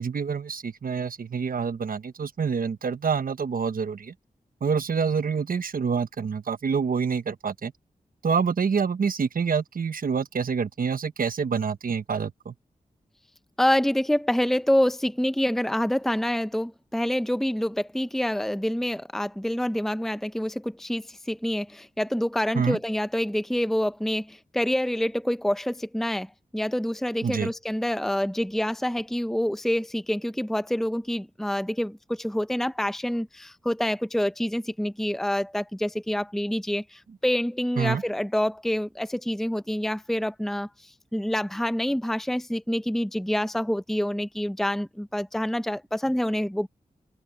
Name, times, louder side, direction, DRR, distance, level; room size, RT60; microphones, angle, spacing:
voice 1, 0.0-4.1 4.6-7.7 8.2-12.5 22.5-22.8 27.2-27.5 37.8-38.0, right 6 dB, 70° right, 1.1 m, -27 dB
voice 2, 13.6-46.7, equal, ahead, 0.8 m, -27 dB
open air
cardioid pair, 40°, 15 cm